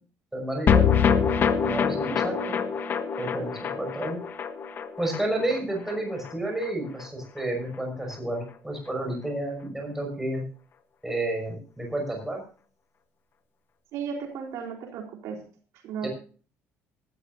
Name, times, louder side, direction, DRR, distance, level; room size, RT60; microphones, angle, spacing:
voice 1, 0.3-1.2 1.6-2.6 3.2-4.2 5.0-10.4 11.0-12.4 16.0-16.1, right 1 dB, 5° right, 1 dB, 5.8 m, -31 dB
sound 1, 0.7-7.1 7.4-7.5 7.7-7.8, left 7 dB, 40° left, 1.4 m, -25 dB
voice 2, 13.9-15.4 15.8-16.1, right 6 dB, 70° right, 1 dB, 3.9 m, -34 dB
19.5 x 13.0 x 2.7 m, 0.38 s
cardioid pair, 145°, 5 cm